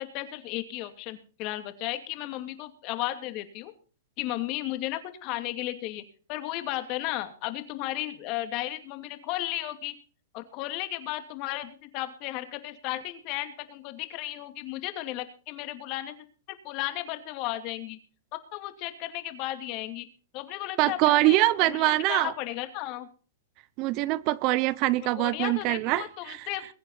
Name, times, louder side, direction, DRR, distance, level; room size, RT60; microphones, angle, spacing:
voice 1, 0.0-3.7 4.2-6.0 6.3-9.9 10.3-16.1 16.6-18.0 18.5-20.1 20.3-23.1 25.1-26.7, left 15 dB, 40° left, 2.6 m, -34 dB
voice 2, 20.8-22.3 23.8-26.4, right 17 dB, 40° right, 0.7 m, -24 dB
22.0 x 9.0 x 4.1 m
hypercardioid pair, 140°, 0 cm